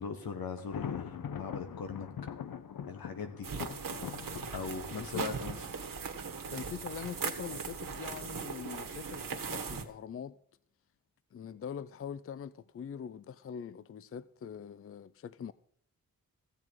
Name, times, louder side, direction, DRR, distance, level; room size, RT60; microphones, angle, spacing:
voice 1, 0.0-2.1 2.9-3.5 4.5-5.6, left 5 dB, 85° left, 1.5 m, -39 dB
Thunder, 0.6-6.4, left 8 dB, 70° left, 0.8 m, -43 dB
sound 1, 3.4-9.8, right 5 dB, 65° right, 1.4 m, -39 dB
voice 2, 4.9-5.4 6.5-10.4 11.3-15.5, left 7 dB, 40° left, 0.4 m, -43 dB
15.0 x 7.5 x 4.7 m
cardioid pair, 60°, 35 cm